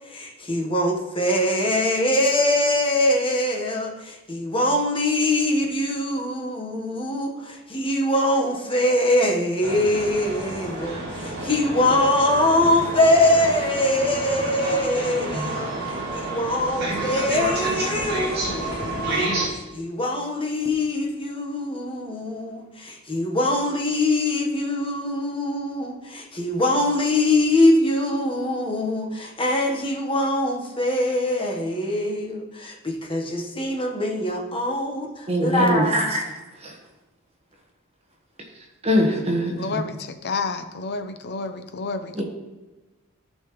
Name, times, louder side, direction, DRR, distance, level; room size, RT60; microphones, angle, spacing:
voice 1, 0.1-15.7 16.1-19.3 19.7-36.0, left 1 dB, 25° left, 0 dB, 1.3 m, -23 dB
sound 1, 9.6-19.5, right 2 dB, 55° right, 2.6 m, -29 dB
voice 2, 35.3-36.2 36.6-36.8 38.8-39.9 42.1-42.2, equal, 30° right, 0 dB, 1.4 m, -23 dB
voice 3, 39.6-42.2, left 4 dB, 55° left, 9 dB, 0.7 m, -30 dB
14.0 x 5.5 x 3.2 m, 1.1 s
head